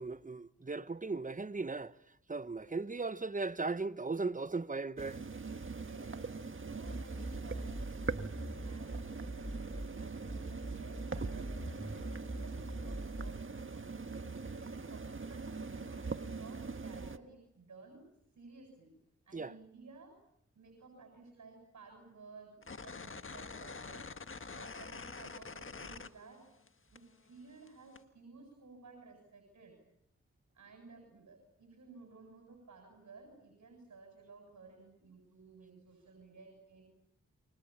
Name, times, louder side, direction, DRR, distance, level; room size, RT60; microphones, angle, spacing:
voice 1, 0.0-1.9 2.3-5.2 19.3-19.5, right 3 dB, 25° right, 1.1 m, -37 dB
sound 1, 5.0-17.2, right 4 dB, 45° right, 1.6 m, -42 dB
voice 2, 5.6-6.2 6.6-7.7 8.2-14.2 14.5-18.1 18.3-18.9 19.3-20.1 20.5-24.1 24.5-26.5 26.9-29.8 30.5-36.8, right 3 dB, 75° right, 7.8 m, -56 dB
sound 2, 6.9-9.9 10.3-13.3, right 1 dB, 5° left, 5.0 m, -42 dB
sound 3, 22.6-26.7 27.0-28.0, left 4 dB, 45° left, 1.6 m, -46 dB
29.0 x 24.5 x 7.2 m
cardioid pair, 50°, 30 cm